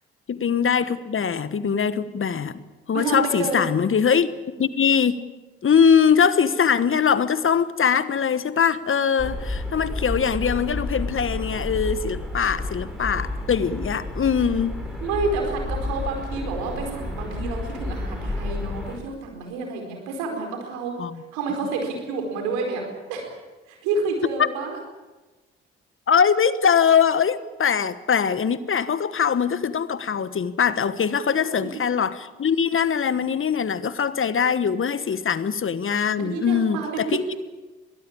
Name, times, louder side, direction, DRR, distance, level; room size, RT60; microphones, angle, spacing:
voice 1, 0.3-2.6 2.9-4.3 4.6-5.2 5.6-14.7 21.0-21.1 24.4-24.5 26.1-37.3, left 7 dB, 45° left, 15 dB, 1.3 m, -22 dB
voice 2, 2.9-3.7 15.0-20.9 21.3-22.8 23.1-23.3 23.7-24.8 31.3-31.8 36.2-37.4, right 3 dB, 80° right, 2 dB, 4.7 m, -29 dB
sound 1, 9.2-19.0, left 2 dB, ahead, 7.3 m, -31 dB
22.5 x 18.5 x 8.7 m, 1.2 s
hypercardioid pair, 40°, 29 cm